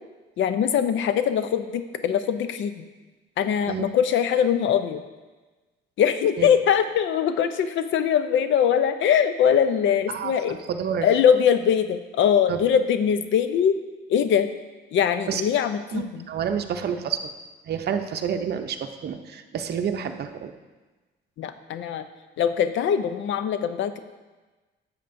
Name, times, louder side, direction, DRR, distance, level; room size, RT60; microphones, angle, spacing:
voice 1, 0.4-2.8 3.4-5.0 6.0-10.6 11.0-13.7 14.1-14.5 14.9-16.2 21.4-22.0 22.4-24.0, left 8 dB, 70° left, 10 dB, 0.6 m, -22 dB
voice 2, 10.1-11.1 12.5-12.6 15.3-15.4 15.9-17.3 17.7-20.5, right 7 dB, 55° right, 6 dB, 0.6 m, -29 dB
10.0 x 7.4 x 2.6 m, 1.2 s
cardioid pair, 90°, 20 cm